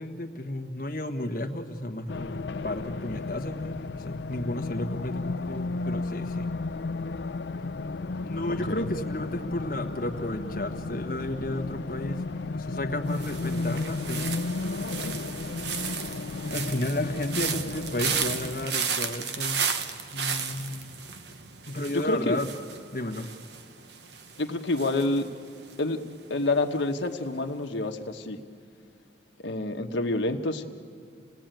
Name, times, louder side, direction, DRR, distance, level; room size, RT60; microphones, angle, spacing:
voice 1, 0.0-2.4 2.6-6.5 8.2-12.2 12.5-14.3 16.5-19.8 20.1-21.0 21.7-22.5 22.9-23.3, left 1 dB, 50° left, 5 dB, 1.4 m, -32 dB
Race car auto racing, 2.1-18.7, left 3 dB, 70° left, 0.5 m, -34 dB
sound 1, 13.1-26.1 26.4-26.9, right 6 dB, 70° right, 1.1 m, -34 dB
voice 2, 21.9-22.4 24.4-25.3 25.8-26.0 26.3-28.4 29.4-30.6, left 2 dB, 90° left, 4 dB, 1.3 m, -28 dB
29.0 x 18.0 x 9.1 m, 2.4 s
head